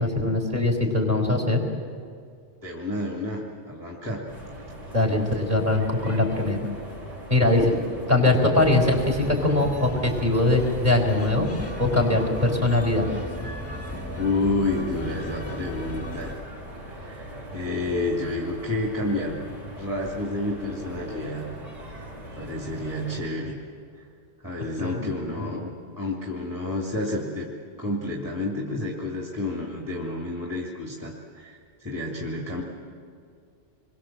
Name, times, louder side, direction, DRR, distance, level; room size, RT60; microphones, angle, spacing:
voice 1, 0.0-1.6 4.9-6.7 7.3-7.8 8.1-13.1 24.8-25.0, left 2 dB, 35° right, 2 dB, 4.4 m, -22 dB
voice 2, 2.6-4.2 14.2-16.4 16.9-17.3 17.5-19.4 19.8-21.5 22.4-23.6 24.0-24.1 24.4-27.5 27.8-32.6, left 2 dB, 15° right, -3 dB, 2.6 m, -30 dB
sound 1, 4.3-23.2, right 1 dB, 90° right, 7.4 m, -40 dB
sound 2, 8.6-16.4, left 1 dB, 10° left, 1.6 m, -36 dB
27.0 x 22.5 x 7.6 m, 2.2 s
omnidirectional pair, 1.2 m